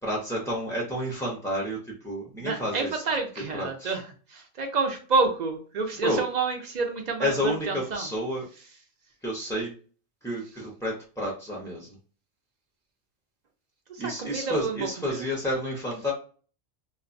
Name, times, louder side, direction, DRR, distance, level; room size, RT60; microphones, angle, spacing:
voice 1, 0.0-3.0 3.4-4.0 6.0-6.2 7.2-8.5 9.2-9.7 10.2-12.0 14.0-16.1, equal, 5° left, -3 dB, 0.3 m, -30 dB
voice 2, 2.4-4.0 4.3-8.1 13.9-15.2, right 4 dB, 65° right, 3 dB, 0.4 m, -29 dB
3.1 x 2.0 x 2.5 m, 0.39 s
omnidirectional pair, 1.3 m